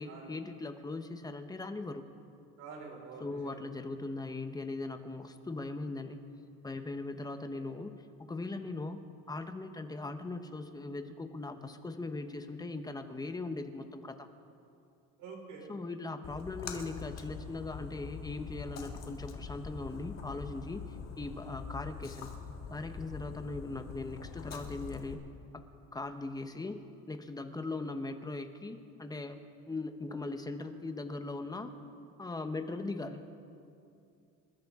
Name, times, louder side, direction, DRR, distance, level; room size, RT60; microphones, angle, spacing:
voice 1, 0.0-2.1 3.2-6.2 6.6-7.9 8.3-9.0 9.3-14.3 15.7-20.8 21.2-22.3 22.7-25.3 25.9-26.8 27.1-29.4 29.7-31.7 32.2-33.2, left 3 dB, 10° left, 8 dB, 0.9 m, -39 dB
voice 2, 2.6-3.6 7.5-7.7 15.2-15.6, right 4 dB, 60° right, -1 dB, 4.8 m, -47 dB
Splash splatter, 16.2-25.1, left 6 dB, 45° left, 1.8 m, -44 dB
27.5 x 13.5 x 3.6 m, 2.5 s
cardioid pair, 140°, 35 cm